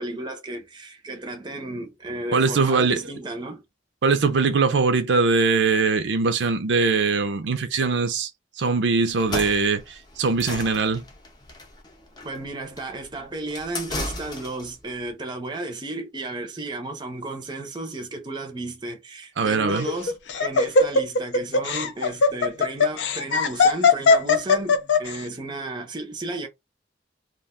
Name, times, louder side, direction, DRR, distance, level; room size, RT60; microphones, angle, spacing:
voice 1, 0.0-3.6 12.2-26.5, right 2 dB, 25° right, 0.5 m, -33 dB
voice 2, 2.3-3.0 4.0-8.3 8.6-11.0 19.4-19.9, right 4 dB, 70° right, 0.5 m, -21 dB
sound 1, 9.1-14.8, left 2 dB, 20° left, 0.6 m, -35 dB
Laughter, 19.7-25.1, left 4 dB, 70° left, 0.4 m, -19 dB
2.4 x 2.2 x 3.6 m
head